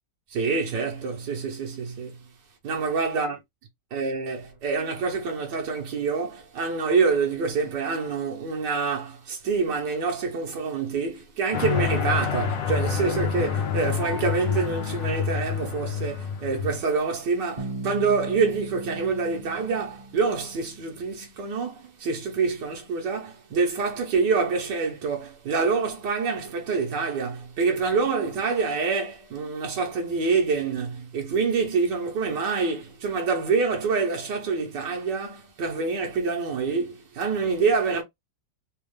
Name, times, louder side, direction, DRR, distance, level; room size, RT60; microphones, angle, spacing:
voice 1, 0.3-2.1 2.6-3.4 3.9-38.0, right 4 dB, 75° right, 1.7 m, -26 dB
sound 1, 11.5-16.8, left 7 dB, 85° left, 1.5 m, -27 dB
Bass guitar, 17.6-21.3, right 2 dB, 35° right, 0.9 m, -38 dB
4.1 x 2.4 x 3.2 m
omnidirectional pair, 1.9 m